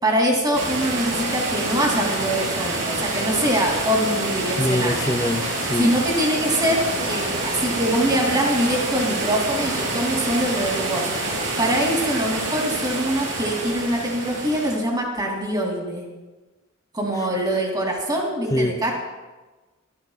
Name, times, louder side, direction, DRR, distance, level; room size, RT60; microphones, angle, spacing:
voice 1, 0.0-5.0 5.8-16.0 16.9-18.9, right 1 dB, 20° right, -1 dB, 3.1 m, -23 dB
sound 1, 0.5-14.7, right 2 dB, 60° right, 4.0 m, -27 dB
voice 2, 4.6-5.9 18.5-18.9, left 1 dB, 15° left, 7 dB, 0.7 m, -24 dB
26.0 x 15.0 x 2.5 m, 1.2 s
head